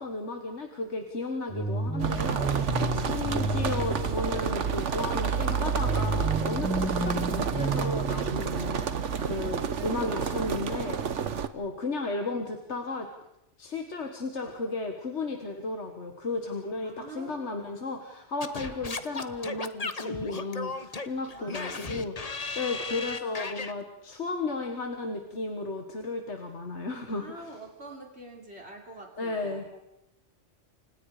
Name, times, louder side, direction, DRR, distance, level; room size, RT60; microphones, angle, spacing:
voice 1, 0.0-8.8 9.2-13.1 13.6-27.5 29.2-29.7, left 3 dB, 65° left, 4 dB, 2.0 m, -34 dB
sound 1, 1.5-4.6 5.8-8.7, right 2 dB, 5° left, 2.5 m, -32 dB
sound 2, 2.0-11.5, right 7 dB, 80° right, 1.4 m, -29 dB
voice 2, 2.7-3.4 16.8-17.7 18.0-18.1 21.3-22.0 22.6-22.8 27.1-29.8, right 2 dB, 60° right, 1 dB, 3.7 m, -46 dB
Singing / Scratching (performance technique), 18.4-23.7, left 4 dB, 35° left, 1.2 m, -35 dB
29.5 x 26.0 x 5.0 m, 0.87 s
omnidirectional pair, 1.2 m